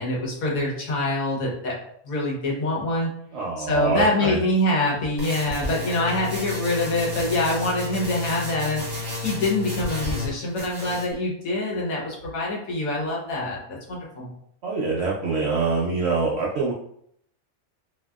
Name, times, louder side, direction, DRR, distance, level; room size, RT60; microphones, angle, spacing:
voice 1, 0.0-1.8 2.0-3.1 3.6-14.3, left 2 dB, 75° left, -3 dB, 1.3 m, -25 dB
voice 2, 3.3-4.4 14.6-16.7, right 4 dB, 65° right, -5 dB, 0.6 m, -24 dB
sound 1, 5.2-10.3 10.6-11.1, left 2 dB, 25° right, 0.6 m, -32 dB
2.7 x 2.7 x 2.2 m, 0.69 s
omnidirectional pair, 1.5 m